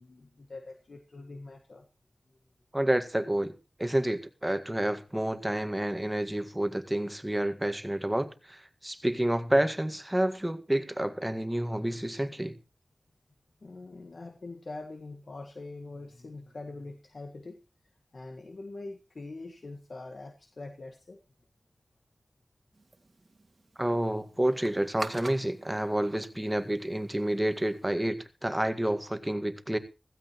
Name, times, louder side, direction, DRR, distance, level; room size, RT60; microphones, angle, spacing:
voice 1, 0.0-1.8 13.6-17.6 18.1-21.2, left 2 dB, 70° left, 1.6 m, -43 dB
voice 2, 2.7-12.5 23.8-29.8, right 1 dB, 15° right, 1.7 m, -29 dB
sound 1, 22.7-27.8, right 2 dB, 55° right, 1.8 m, -46 dB
15.5 x 15.5 x 3.1 m
wide cardioid pair, 55°, 0 cm